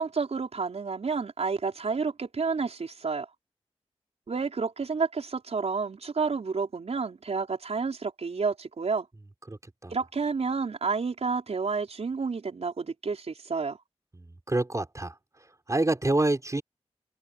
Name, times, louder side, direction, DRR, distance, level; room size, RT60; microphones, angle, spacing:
voice 1, 0.0-3.3 4.3-9.1 9.9-13.8, right 4 dB, 75° right, 5.0 m, -30 dB
voice 2, 9.5-9.9 14.1-15.1 15.7-16.6, right 2 dB, 30° right, 5.4 m, -27 dB
wide cardioid pair, 85°, 11 cm